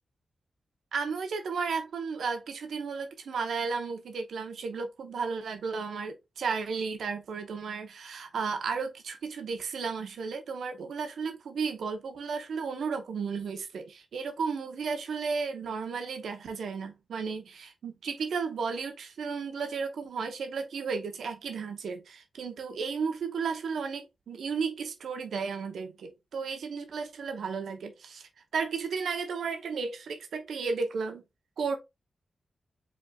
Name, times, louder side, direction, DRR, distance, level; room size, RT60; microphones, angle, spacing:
voice 1, 0.9-31.2 31.6-31.8, right 5 dB, 80° right, 0.8 m, -34 dB
5.2 x 3.5 x 2.3 m
cardioid pair, 45°, 0 cm